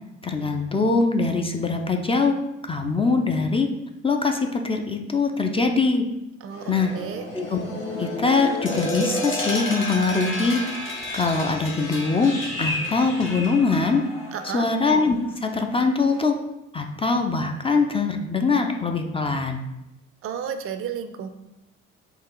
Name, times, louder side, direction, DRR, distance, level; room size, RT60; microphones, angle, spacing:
voice 1, 0.2-2.4 2.7-3.7 4.0-6.0 6.7-6.9 7.3-7.6 8.0-10.6 11.1-12.3 12.6-14.0 14.5-16.4 16.7-19.6, left 4 dB, 15° left, 4 dB, 0.4 m, -22 dB
voice 2, 6.4-7.3 14.3-14.7 20.2-21.3, right 7 dB, 35° right, 9 dB, 0.5 m, -32 dB
sound 1, 6.5-15.1 15.4-15.7 16.1-16.2, left 1 dB, 80° left, 1.0 m, -33 dB
sound 2, 8.7-14.2, left 1 dB, 30° left, 0.9 m, -34 dB
3.8 x 2.4 x 4.6 m, 0.92 s
hypercardioid pair, 50°, 39 cm